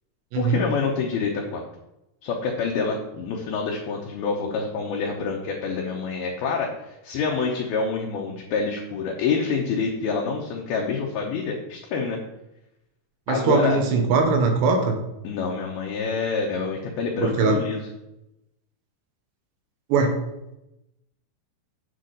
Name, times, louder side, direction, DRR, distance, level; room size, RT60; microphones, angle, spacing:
voice 1, 0.4-1.6 2.2-12.2 13.3-13.8 15.2-17.8, left 5 dB, 75° left, -1 dB, 2.5 m, -27 dB
voice 2, 13.3-15.0 17.2-17.6 19.9-20.2, right 4 dB, 80° right, 3 dB, 3.1 m, -21 dB
8.2 x 7.5 x 3.9 m, 0.89 s
omnidirectional pair, 5.0 m